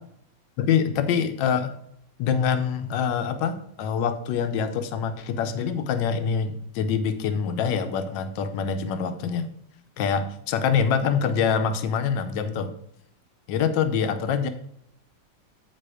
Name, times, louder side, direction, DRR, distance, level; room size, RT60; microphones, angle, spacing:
voice 1, 0.6-1.7 2.2-9.5 10.0-12.7 13.5-14.5, left 7 dB, 75° left, 10 dB, 1.3 m, -25 dB
9.1 x 4.1 x 4.9 m, 0.73 s
omnidirectional pair, 2.1 m